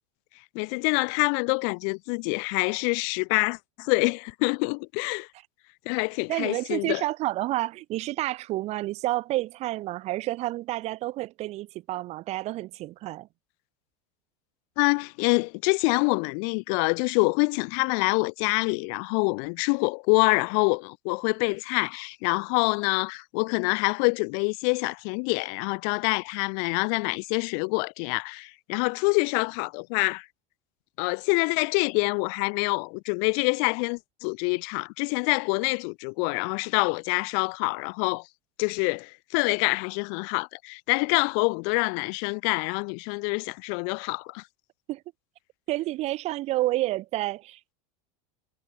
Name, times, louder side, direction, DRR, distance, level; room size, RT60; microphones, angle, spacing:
voice 1, 0.6-5.3 5.9-7.0 14.8-30.3 31.0-38.3 38.6-44.4, left 40 dB or more, 60° left, 1.9 m, -26 dB
voice 2, 6.3-13.3 44.9-45.0 45.7-47.7, right 17 dB, 40° right, 0.6 m, -29 dB
supercardioid pair, 140°, 17 cm